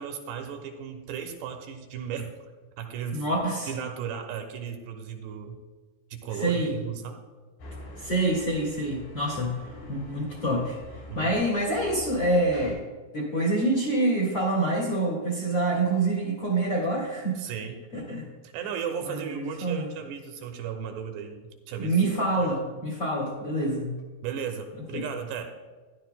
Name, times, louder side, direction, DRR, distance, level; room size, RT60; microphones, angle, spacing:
voice 1, 0.0-2.3 2.8-3.2 3.7-5.6 6.1-7.2 11.1-11.4 17.4-17.8 18.5-22.0 22.4-22.5 24.2-25.5, right 7 dB, 80° right, 4 dB, 2.9 m, -35 dB
voice 2, 3.1-3.7 6.3-6.7 8.0-9.5 9.9-10.8 11.1-12.8 13.1-17.4 17.9-18.3 19.1-19.9 21.8-23.9 24.9-25.1, right 1 dB, 45° left, -5 dB, 2.0 m, -26 dB
sound 1, 7.6-12.7, left 1 dB, 75° left, 4.9 m, -44 dB
14.5 x 11.0 x 2.2 m, 1.4 s
omnidirectional pair, 5.1 m